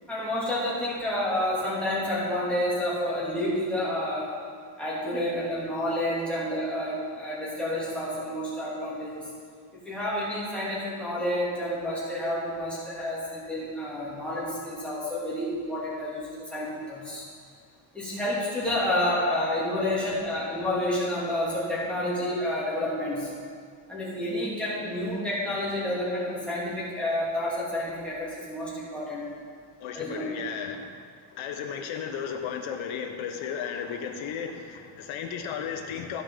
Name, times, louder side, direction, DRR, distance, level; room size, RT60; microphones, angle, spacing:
voice 1, 0.1-4.4 4.8-9.3 9.7-17.2 17.9-23.3 23.9-29.2 29.9-30.3, left 1 dB, ahead, -9 dB, 2.4 m, -29 dB
voice 2, 29.8-30.9 31.4-36.2, left 7 dB, 80° left, 4 dB, 1.2 m, -34 dB
15.0 x 5.3 x 3.7 m, 2.1 s
cardioid pair, 170°, 48 cm